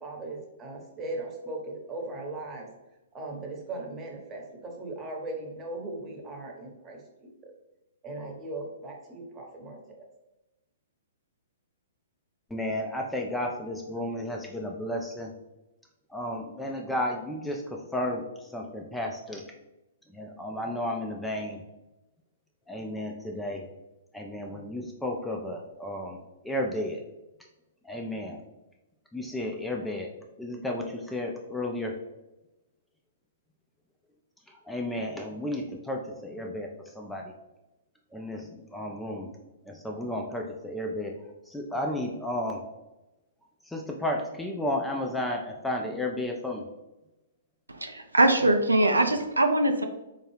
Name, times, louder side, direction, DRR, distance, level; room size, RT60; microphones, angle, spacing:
voice 1, 0.0-2.7 3.1-7.0 8.0-9.8, right 2 dB, 20° right, 0 dB, 0.9 m, -38 dB
voice 2, 12.5-15.3 16.1-19.4 20.1-21.6 22.7-23.7 24.1-26.2 26.4-27.0 27.8-28.4 29.1-30.1 30.4-31.9 34.5-36.7 36.9-37.3 38.1-39.3 39.7-41.1 41.5-42.6 43.7-46.7, left 1 dB, 5° left, 0 dB, 0.4 m, -33 dB
voice 3, 47.7-49.8, right 1 dB, 80° right, 5 dB, 0.4 m, -22 dB
4.5 x 2.3 x 3.2 m, 0.98 s
figure-of-eight pair, 115°, 0 cm